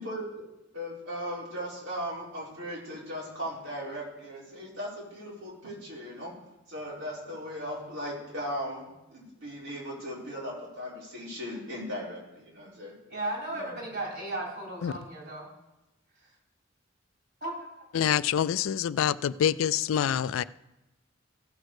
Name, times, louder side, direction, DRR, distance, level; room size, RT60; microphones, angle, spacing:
voice 1, 0.0-6.3 6.7-12.9 13.5-13.9, equal, 80° right, -6 dB, 4.4 m, -38 dB
voice 2, 13.1-15.5 17.4-17.5, right 2 dB, 60° right, -2 dB, 3.7 m, -35 dB
voice 3, 17.9-20.4, left 9 dB, 90° left, 18 dB, 0.3 m, -26 dB
15.5 x 6.3 x 4.8 m, 0.96 s
head